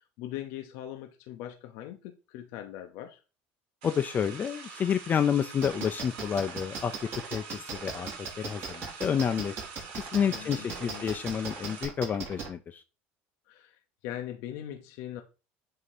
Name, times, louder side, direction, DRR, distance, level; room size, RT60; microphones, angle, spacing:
voice 1, 0.0-3.2 10.1-11.1 13.5-15.2, left 12 dB, 75° left, 0.7 m, -41 dB
voice 2, 3.8-6.9 7.3-8.1 8.4-9.5 10.1-12.8, left 8 dB, 35° left, 0.4 m, -29 dB
sound 1, 3.8-11.8, right 5 dB, 80° right, 1.7 m, -45 dB
sound 2, 5.6-12.5, right 5 dB, 50° right, 2.3 m, -37 dB
7.7 x 2.8 x 4.8 m
supercardioid pair, 100°, 5 cm